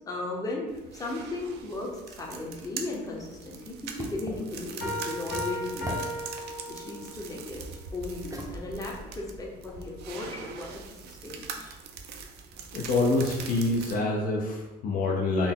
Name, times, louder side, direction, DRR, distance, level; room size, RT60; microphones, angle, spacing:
voice 1, 0.0-6.0 6.7-7.6 7.9-11.8, left 2 dB, 20° left, -1 dB, 0.7 m, -36 dB
sound 1, 0.7-14.0, right 6 dB, 75° right, 0.5 m, -43 dB
sound 2, 2.7-9.9, right 1 dB, 20° right, 0.6 m, -46 dB
sound 3, 4.8-7.3, equal, 75° left, 1.1 m, -35 dB
voice 2, 12.7-15.5, left 2 dB, 55° left, 0 dB, 0.5 m, -26 dB
3.9 x 2.1 x 3.7 m, 1.1 s
cardioid pair, 110°, 17 cm